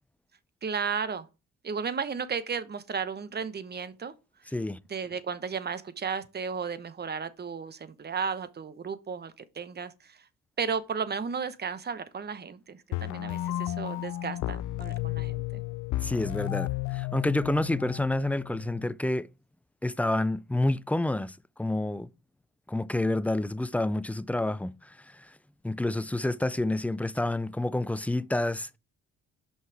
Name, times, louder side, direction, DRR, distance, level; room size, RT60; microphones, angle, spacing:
voice 1, 0.6-1.3 1.6-4.1 4.9-10.2 10.6-15.6, right 6 dB, 35° right, 0.9 m, -34 dB
sound 1, 12.9-18.9, left 15 dB, 80° left, 0.5 m, -33 dB
voice 2, 16.0-19.3 19.8-22.1 22.7-25.3 25.6-28.8, left 1 dB, 5° left, 0.3 m, -29 dB
5.9 x 5.7 x 4.7 m
cardioid pair, 90°, 30 cm